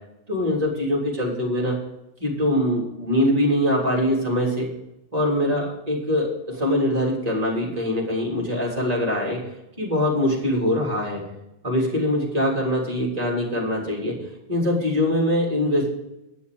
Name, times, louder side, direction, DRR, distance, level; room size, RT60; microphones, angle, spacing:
voice 1, 0.3-1.8 2.2-4.7 5.1-9.4 9.8-11.2 11.6-15.9, left 1 dB, 30° right, -2 dB, 3.7 m, -23 dB
9.9 x 7.0 x 7.8 m, 0.87 s
omnidirectional pair, 1.2 m